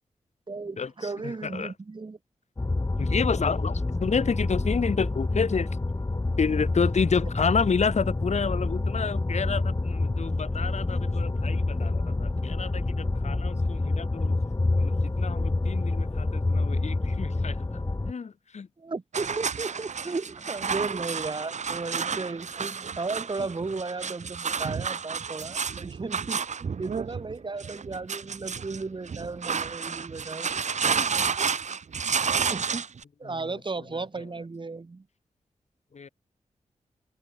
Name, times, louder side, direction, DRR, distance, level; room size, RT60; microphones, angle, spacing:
voice 1, 0.5-2.2 18.8-30.5 31.0-31.1 32.5-32.9 33.2-35.1, right 3 dB, 40° right, 2.7 m, -35 dB
voice 2, 1.2-1.7 3.0-5.7 6.4-14.4 14.8-18.7 31.0-31.1 35.9-36.1, left 5 dB, 65° left, 7.3 m, -29 dB
sound 1, 2.6-18.1, left 2 dB, 30° left, 3.7 m, -27 dB
sound 2, 19.1-33.0, right 6 dB, 70° right, 5.5 m, -31 dB
cardioid pair, 65°, 12 cm